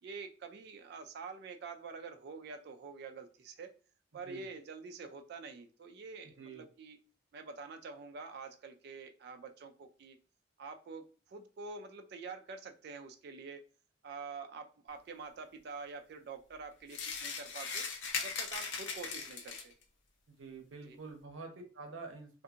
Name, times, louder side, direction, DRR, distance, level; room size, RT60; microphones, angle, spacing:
voice 1, 0.0-3.7 4.1-7.0 7.3-10.2 10.6-13.6 14.0-17.8 18.2-19.7 20.8-21.0, right 4 dB, 55° right, 5 dB, 0.3 m, -47 dB
sound 1, 16.9-19.8, left 5 dB, 70° left, 0.6 m, -39 dB
voice 2, 20.4-22.4, right 4 dB, 85° right, 4 dB, 0.7 m, -47 dB
2.7 x 2.5 x 2.4 m, 0.38 s
head